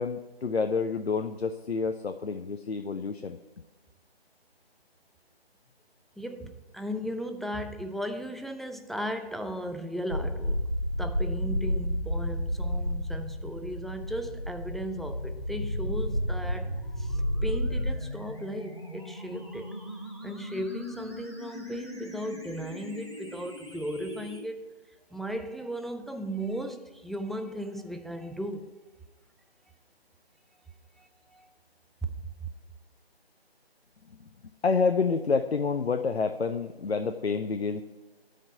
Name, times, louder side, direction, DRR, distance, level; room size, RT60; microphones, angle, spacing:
voice 1, 0.0-3.4 34.6-37.8, left 5 dB, 70° left, 7 dB, 0.5 m, -28 dB
voice 2, 6.2-10.6 11.0-16.7 17.0-17.1 17.4-19.7 20.2-24.6 25.1-28.7 31.0-31.4, equal, ahead, 7 dB, 0.3 m, -36 dB
sound 1, 10.1-18.0, equal, 50° left, 1.3 m, -31 dB
sound 2, 14.4-24.4, equal, 25° left, 0.8 m, -40 dB
11.0 x 5.0 x 4.1 m, 1.3 s
figure-of-eight pair, 165°, 32 cm